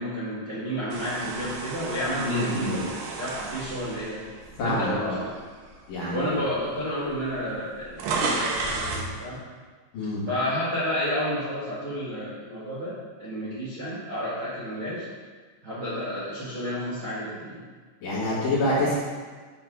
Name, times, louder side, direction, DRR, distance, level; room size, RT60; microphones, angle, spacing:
voice 1, 0.0-2.9 3.2-4.2 4.6-5.1 6.1-9.4 10.3-12.9 13.2-15.0 15.6-17.6, equal, 45° right, -10 dB, 1.7 m, -31 dB
sound 1, 0.9-5.1 5.7-5.9 6.8-6.9 7.1-9.1, right 3 dB, 70° right, 2.7 m, -32 dB
voice 2, 2.2-2.8 4.6-5.2 5.9-6.4 9.9-10.2 18.0-18.9, left 1 dB, 50° left, -9 dB, 3.1 m, -27 dB
9.4 x 4.7 x 6.2 m, 1.5 s
omnidirectional pair, 5.6 m